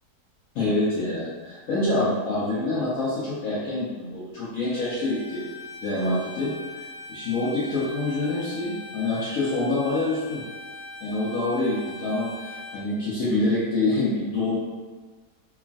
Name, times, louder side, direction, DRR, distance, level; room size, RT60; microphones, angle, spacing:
voice 1, 0.5-5.4 5.8-10.4 11.0-14.6, left 2 dB, 70° left, -8 dB, 0.9 m, -26 dB
Bowed string instrument, 4.7-12.8, left 1 dB, 5° right, 0.9 m, -41 dB
3.0 x 2.4 x 2.4 m, 1.4 s
omnidirectional pair, 1.7 m